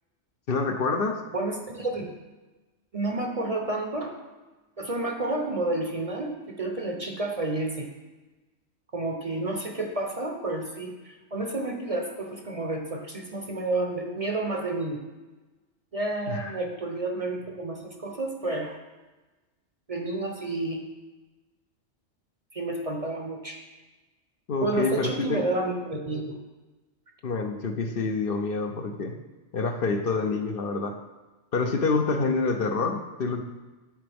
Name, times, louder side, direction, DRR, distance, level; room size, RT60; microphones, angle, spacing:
voice 1, 0.5-1.2 16.3-16.5 24.5-25.4 27.2-29.1 29.5-30.9 31.5-33.4, left 4 dB, 60° left, 4 dB, 0.8 m, -27 dB
voice 2, 1.3-2.1 2.9-4.1 4.8-7.9 8.9-15.0 15.9-18.8 19.9-20.9 22.5-23.6 24.6-26.4, right 2 dB, 35° right, 2 dB, 0.7 m, -30 dB
10.5 x 6.8 x 3.5 m, 1.2 s
omnidirectional pair, 1.2 m